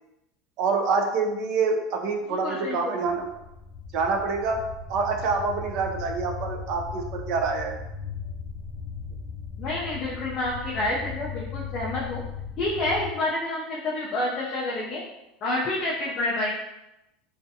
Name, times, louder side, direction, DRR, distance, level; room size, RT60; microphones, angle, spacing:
voice 1, 0.6-3.3 3.9-4.6 4.9-7.7, right 4 dB, 50° right, 3 dB, 0.4 m, -26 dB
voice 2, 2.4-2.9 9.6-12.2 12.6-15.0 15.4-16.5, left 2 dB, 35° left, -5 dB, 0.4 m, -28 dB
sound 1, 3.1-13.1, left 5 dB, 5° right, 0.7 m, -37 dB
2.4 x 2.3 x 2.6 m, 0.92 s
supercardioid pair, 155°, 0 cm